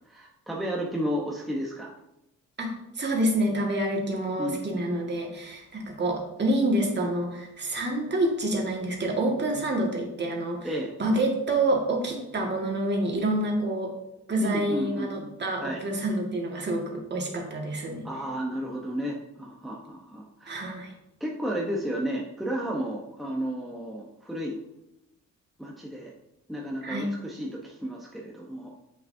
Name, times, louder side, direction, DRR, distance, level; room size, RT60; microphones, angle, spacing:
voice 1, 0.0-1.9 4.4-4.6 10.6-10.9 14.4-15.3 15.6-15.8 18.0-20.6 21.2-24.6 25.6-26.1 26.5-28.7, equal, ahead, -3 dB, 1.0 m, -32 dB
voice 2, 3.0-10.7 11.0-13.9 14.3-18.1 20.5-20.9 26.8-27.1, right 1 dB, 35° right, 0 dB, 1.9 m, -27 dB
7.8 x 5.9 x 2.7 m, 0.88 s
cardioid pair, 90°, 30 cm